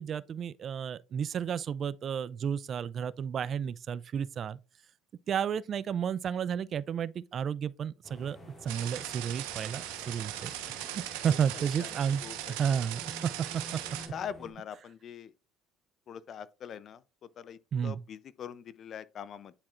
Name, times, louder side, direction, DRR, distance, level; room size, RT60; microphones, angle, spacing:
voice 1, 0.0-4.6 5.3-8.4 8.6-10.5 10.9-12.2 12.6-13.6 17.7-18.0, right 8 dB, 45° right, 0.3 m, -32 dB
sound 1, 8.0-14.5, equal, 25° left, 1.8 m, -51 dB
sound 2, 8.7-14.1, right 13 dB, 85° right, 1.0 m, -39 dB
voice 2, 12.2-12.5 14.1-15.3 16.1-17.0 17.4-19.5, left 8 dB, 50° left, 0.4 m, -42 dB
9.7 x 4.2 x 2.4 m
supercardioid pair, 85°, 0 cm